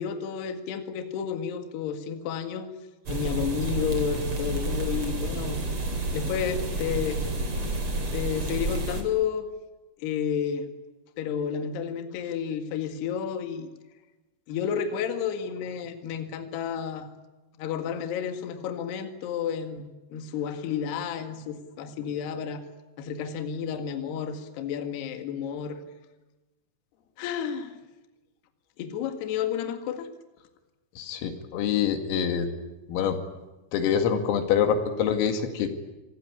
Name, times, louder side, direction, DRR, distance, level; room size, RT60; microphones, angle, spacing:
voice 1, 0.0-2.7 3.1-5.6 6.1-7.3 8.1-9.5 10.0-10.7 11.2-13.7 14.5-17.1 17.6-22.6 23.0-25.8 27.2-27.8 28.8-30.1, left 7 dB, 60° left, 7 dB, 3.5 m, -31 dB
snowing in Dresden-Heide, 3.1-9.0, right 2 dB, 30° right, 3.6 m, -30 dB
voice 2, 31.0-32.5 32.9-33.2 33.7-35.7, left 8 dB, 85° left, 6 dB, 4.9 m, -25 dB
26.0 x 18.0 x 9.8 m, 1.1 s
omnidirectional pair, 5.9 m